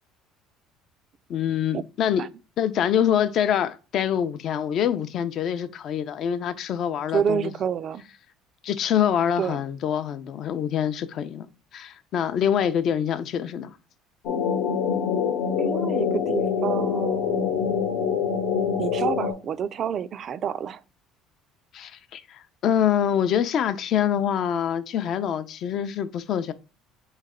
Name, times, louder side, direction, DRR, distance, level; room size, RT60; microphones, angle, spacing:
voice 1, 1.3-2.3 2.6-7.5 8.6-11.5 11.7-13.8 21.7-26.5, left 9 dB, 50° left, 0.5 m, -25 dB
voice 2, 7.1-8.0 9.4-9.6 15.6-17.7 18.8-20.8, right 7 dB, 45° right, 0.3 m, -28 dB
sound 1, 14.2-19.3, left 7 dB, 80° left, 1.0 m, -25 dB
4.0 x 3.2 x 3.6 m
cardioid pair, 115°, 0 cm